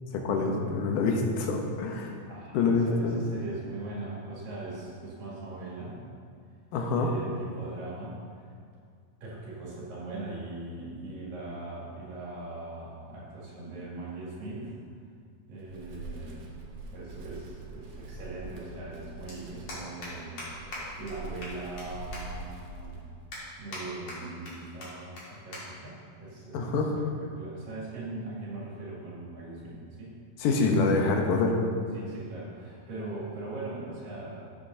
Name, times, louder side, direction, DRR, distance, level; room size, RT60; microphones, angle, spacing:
voice 1, 0.1-2.1 2.5-3.2 6.7-7.1 26.5-26.9 30.4-31.7, left 3 dB, 80° left, 2 dB, 2.4 m, -26 dB
voice 2, 2.3-6.1 6.9-8.5 9.2-14.8 15.5-16.5 16.9-23.0 23.6-27.1 27.3-30.2 31.9-34.4, right 2 dB, 90° right, -7 dB, 3.9 m, -40 dB
Wind, 15.6-23.3, right 2 dB, 65° right, 1.7 m, -44 dB
sound 1, 19.3-19.4 19.7-20.1 20.4-20.5 20.7-20.8 21.1-21.2 21.4-21.8 22.1-22.2 22.7-22.8 23.3-23.8 24.1-24.5 24.8-24.9 25.2-25.3 25.5-25.6 25.9-26.2 26.9-27.2, left 2 dB, 50° left, 2.9 m, -40 dB
13.5 x 7.2 x 2.7 m, 2.2 s
omnidirectional pair, 3.9 m